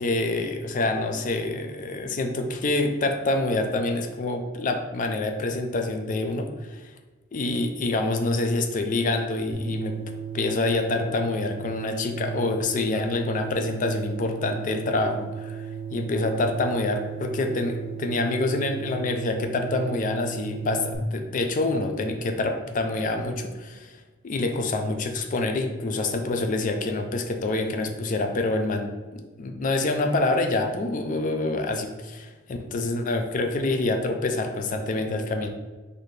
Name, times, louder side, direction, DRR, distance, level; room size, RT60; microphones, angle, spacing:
voice 1, 0.0-6.9 7.3-10.0 10.3-24.0 24.2-35.5, left 2 dB, 40° left, 5 dB, 0.4 m, -26 dB
sound 1, 9.5-20.9, right 6 dB, 25° right, 0.4 m, -35 dB
4.0 x 2.7 x 3.2 m, 1.3 s
head